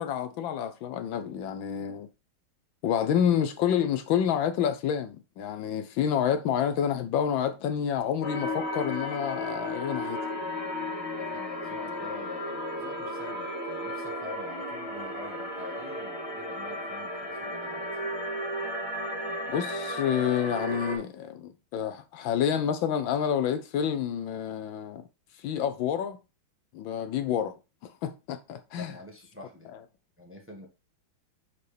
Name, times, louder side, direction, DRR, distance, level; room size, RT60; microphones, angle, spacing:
voice 1, 0.0-2.1 2.8-10.3 19.5-25.0 25.4-26.2 26.7-27.6 27.8-28.9, left 9 dB, 75° left, 1.3 m, -28 dB
sound 1, 8.2-21.0, left 1 dB, 35° left, 3.1 m, -34 dB
voice 2, 11.1-17.9 28.7-29.7 30.2-30.7, left 2 dB, 10° right, 1.1 m, -45 dB
9.5 x 4.2 x 3.3 m
omnidirectional pair, 2.3 m